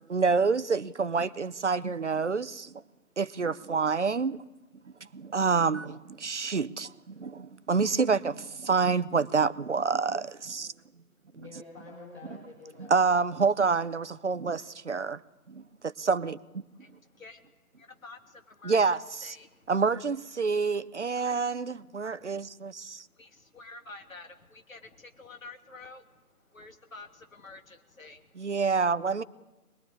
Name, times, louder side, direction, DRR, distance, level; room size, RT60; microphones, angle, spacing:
voice 1, 0.1-2.7 3.2-4.4 5.1-10.7 12.9-15.2 15.5-16.6 18.6-19.4 19.7-23.0 28.4-29.2, right 5 dB, 50° right, 0.9 m, -27 dB
voice 2, 11.3-13.2, left 3 dB, 10° left, 3.8 m, -48 dB
voice 3, 16.7-19.7 22.0-22.4 22.9-28.6, left 3 dB, 60° left, 3.0 m, -50 dB
26.0 x 21.0 x 9.8 m
figure-of-eight pair, 150°, 46 cm